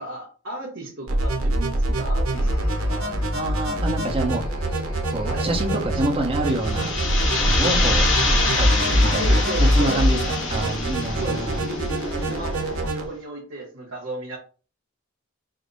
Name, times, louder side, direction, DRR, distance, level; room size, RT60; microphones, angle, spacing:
voice 1, 0.0-3.2 5.2-6.0 9.0-10.0 11.2-11.7 12.0-14.4, right 2 dB, 60° right, -6 dB, 1.2 m, -34 dB
sound 1, 1.1-13.1, equal, 80° right, 0.9 m, -24 dB
sound 2, 2.3-12.9, left 1 dB, 85° left, 1.1 m, -36 dB
voice 2, 3.3-4.4 5.1-6.9 7.4-8.0 8.5-10.2 10.5-11.7, right 2 dB, 25° right, 0 dB, 0.8 m, -27 dB
sound 3, 6.5-12.2, left 3 dB, 60° left, 0.9 m, -26 dB
5.2 x 2.1 x 3.9 m, 0.37 s
head